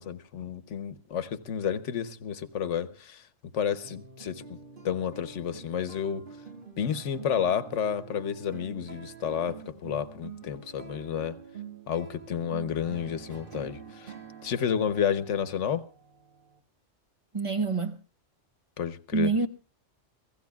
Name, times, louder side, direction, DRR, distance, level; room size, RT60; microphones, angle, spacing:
voice 1, 0.0-3.3 3.5-4.4 4.8-6.3 6.8-11.4 11.9-14.1 14.4-15.8 18.8-19.3, left 8 dB, 85° left, 1.2 m, -31 dB
sound 1, 3.8-16.6, right 7 dB, 45° right, 2.1 m, -46 dB
voice 2, 17.3-18.0 19.1-19.5, right 4 dB, 30° right, 1.0 m, -26 dB
28.0 x 16.0 x 2.3 m
omnidirectional pair, 1.2 m